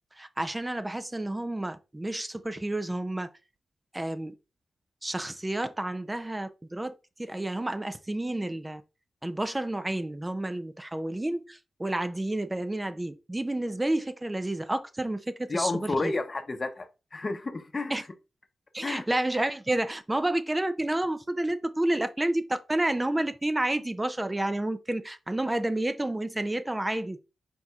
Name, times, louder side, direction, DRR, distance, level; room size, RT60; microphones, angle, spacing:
voice 1, 0.1-3.3 3.9-4.3 5.0-6.9 7.2-8.8 9.2-16.1 17.9-18.0 18.7-27.2, right 1 dB, 20° right, 0.4 m, -30 dB
voice 2, 15.5-16.9 17.1-17.9 18.8-19.0, left 3 dB, 45° left, 0.7 m, -30 dB
4.3 x 4.2 x 2.4 m
supercardioid pair, 40°, 0 cm